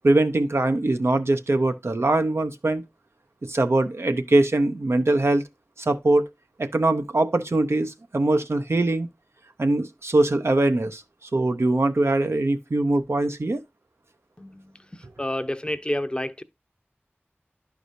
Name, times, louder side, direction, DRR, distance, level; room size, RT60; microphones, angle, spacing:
voice 1, 0.0-2.8 3.4-5.4 5.8-6.3 6.6-9.1 9.6-11.0 11.3-13.6, right 2 dB, 75° right, 0.7 m, -22 dB
voice 2, 14.9-16.4, left 1 dB, 20° left, 0.6 m, -29 dB
11.0 x 4.8 x 2.6 m
wide cardioid pair, 45°, 4 cm